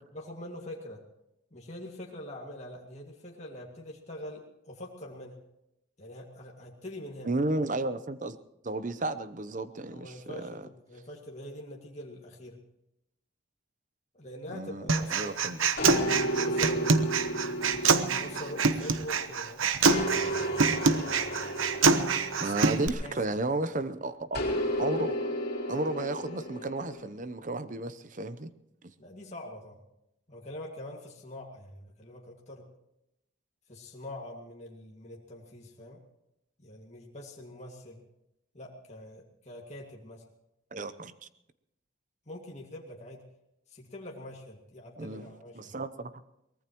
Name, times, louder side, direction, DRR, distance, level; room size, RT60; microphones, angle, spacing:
voice 1, 0.1-1.0 1.5-5.4 6.0-7.3 9.9-12.6 14.1-15.8 16.3-17.1 18.2-19.7 22.4-22.6 23.0-23.2 29.0-29.8 30.3-32.7 33.7-36.0 36.6-38.0 38.5-40.2 42.3-43.2 43.7-45.7, left 1 dB, 35° left, -1 dB, 2.2 m, -44 dB
voice 2, 7.2-8.4 8.6-10.7 14.5-14.8 15.1-15.6 22.4-24.4 24.8-25.1 25.7-28.5 40.7-41.1 45.0-45.3 45.5-46.1, right 2 dB, 40° right, 12 dB, 0.8 m, -33 dB
Human voice, 14.9-22.9, right 4 dB, 85° right, 1.0 m, -26 dB
sound 1, 15.8-19.3 19.9-23.6 24.3-27.0, equal, 50° left, 4.1 m, -33 dB
23.0 x 19.5 x 3.1 m, 0.84 s
head